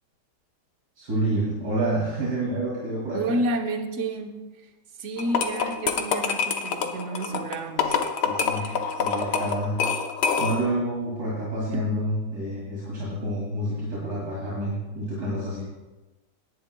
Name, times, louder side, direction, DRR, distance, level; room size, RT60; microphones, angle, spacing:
voice 1, 1.0-3.4 8.2-9.8 10.4-15.6, right 1 dB, 70° right, 3.1 m, -28 dB
voice 2, 3.1-4.7 5.0-8.0 8.6-8.8 11.7-11.9, right 2 dB, 50° right, 1.2 m, -30 dB
sound 1, 5.2-10.8, left 6 dB, 80° left, 1.5 m, -26 dB
18.0 x 10.5 x 2.2 m
omnidirectional pair, 1.8 m